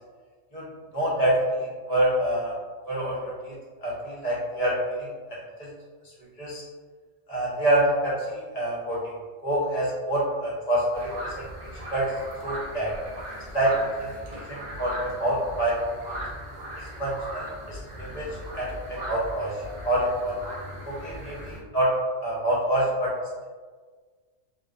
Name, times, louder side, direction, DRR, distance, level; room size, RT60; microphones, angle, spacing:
voice 1, 0.9-2.5 2.9-3.5 3.8-5.7 6.4-6.6 7.3-9.0 9.4-11.4 11.9-12.1 12.4-12.9 13.5-13.7 14.0-15.8 16.8-18.3 18.5-19.6 19.8-20.3 20.8-21.9 22.2-23.1, right 1 dB, 40° left, -7 dB, 0.7 m, -27 dB
sound 1, 10.9-21.6, equal, 65° right, 0.4 m, -38 dB
2.3 x 2.3 x 2.3 m, 1.5 s
omnidirectional pair, 1.3 m